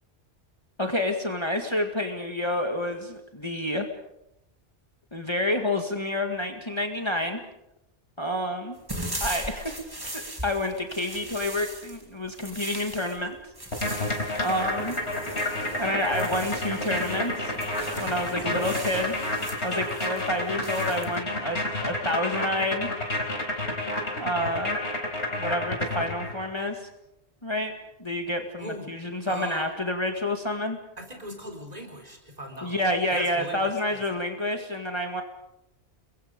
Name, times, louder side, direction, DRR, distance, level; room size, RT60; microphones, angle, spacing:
voice 1, 0.8-3.9 5.1-7.4 8.2-8.8 9.2-9.8 10.0-13.4 14.4-15.0 15.8-17.5 17.9-19.1 19.6-22.9 24.2-24.8 25.3-26.9 27.4-30.8 32.6-35.2, left 1 dB, 25° left, 4 dB, 2.1 m, -29 dB
sound 1, 8.8-17.3 17.5-21.2, right 1 dB, 20° right, 2.7 m, -39 dB
sound 2, 13.7-26.5, left 2 dB, 85° left, 4.4 m, -30 dB
sound 3, 14.5-19.5, right 3 dB, 90° right, 2.5 m, -42 dB
voice 2, 18.0-18.7 28.6-28.9 29.3-29.7 31.0-34.0, right 1 dB, 35° right, 3 dB, 4.6 m, -40 dB
30.0 x 22.5 x 5.3 m, 0.83 s
omnidirectional pair, 1.1 m